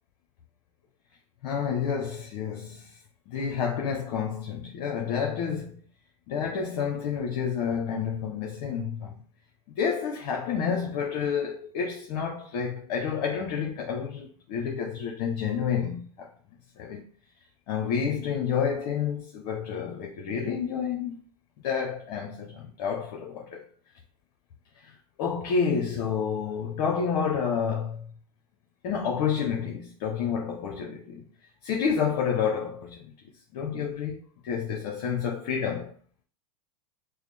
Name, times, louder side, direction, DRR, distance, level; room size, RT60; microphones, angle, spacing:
voice 1, 1.4-3.0 3.3-5.8 6.3-9.1 9.8-16.3 16.8-17.0 17.7-21.2 21.6-23.7 24.8-28.1 28.8-31.3 31.6-33.1 33.5-35.9, left 6 dB, 60° left, 0.8 m, -29 dB
4.7 x 2.0 x 3.3 m
hypercardioid pair, 110°, 20 cm